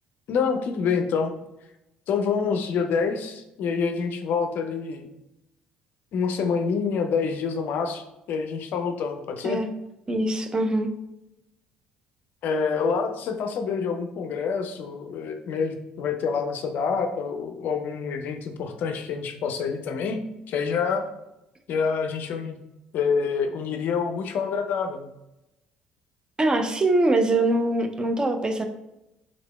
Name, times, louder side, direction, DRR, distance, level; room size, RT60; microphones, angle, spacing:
voice 1, 0.3-1.3 2.1-5.1 6.1-8.0 8.3-9.6 12.4-20.2 20.5-21.0 21.7-22.6 22.9-25.1, left 5 dB, 55° left, 5 dB, 0.4 m, -27 dB
voice 2, 10.1-10.9 26.4-28.6, right 2 dB, 20° right, 6 dB, 0.5 m, -23 dB
3.8 x 3.3 x 2.2 m, 0.90 s
figure-of-eight pair, 50°, 4 cm